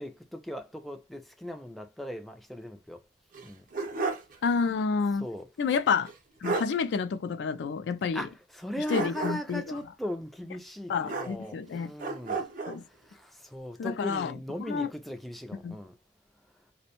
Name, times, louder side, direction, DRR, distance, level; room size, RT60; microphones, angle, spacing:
voice 1, 0.0-3.0 3.4-3.7 5.2-5.5 8.1-12.5 12.7-16.0, equal, ahead, 0.3 m, -38 dB
sound 1, 3.3-4.4 4.7-4.8 6.1-6.2 6.4-6.8 8.9-9.6 11.0-11.7 12.0-12.8, right 4 dB, 50° right, 0.6 m, -33 dB
voice 2, 4.4-5.3 5.6-6.1 6.4-8.3 8.9-9.8 10.9-11.9 12.7-12.8 13.8-14.3 14.7-14.9 15.6-15.8, left 5 dB, 75° left, 0.3 m, -29 dB
2.5 x 2.1 x 2.8 m
head